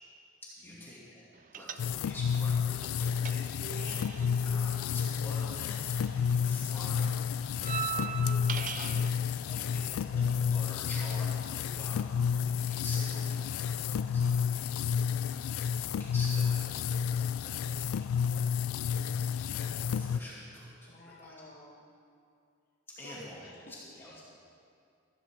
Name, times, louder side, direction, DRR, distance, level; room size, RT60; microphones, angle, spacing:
voice 1, 0.6-1.2 1.5-7.1 7.6-18.0 18.3-18.4 19.3-20.7 21.0-21.3 23.0-24.2, left 1 dB, 10° left, -7 dB, 2.4 m, -48 dB
sound 1, 1.5-2.3 2.6-6.0 6.2-9.1, right 7 dB, 35° right, 0.3 m, -40 dB
sound 2, 1.8-20.2, left 7 dB, 75° left, 0.3 m, -31 dB
voice 2, 9.3-10.0 20.9-21.9 22.9-23.6 23.9-24.2, left 1 dB, 40° left, -2 dB, 1.5 m, -52 dB
14.5 x 14.0 x 3.7 m, 2.4 s
head